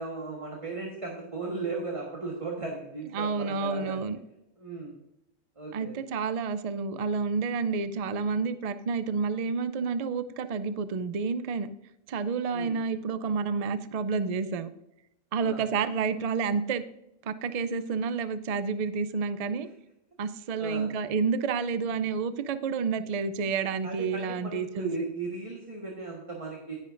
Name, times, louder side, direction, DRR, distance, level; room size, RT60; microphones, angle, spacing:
voice 1, 0.0-4.0 4.6-4.9 5.6-5.9 12.5-12.7 15.4-15.7 20.6-20.9 23.8-26.8, right 3 dB, 25° right, -1 dB, 1.4 m, -36 dB
voice 2, 3.1-4.2 5.7-11.7 12.1-14.7 15.3-16.8 17.2-19.7 20.2-24.9, right 5 dB, 70° right, 12 dB, 0.3 m, -29 dB
10.5 x 10.5 x 2.5 m, 0.86 s
omnidirectional pair, 1.4 m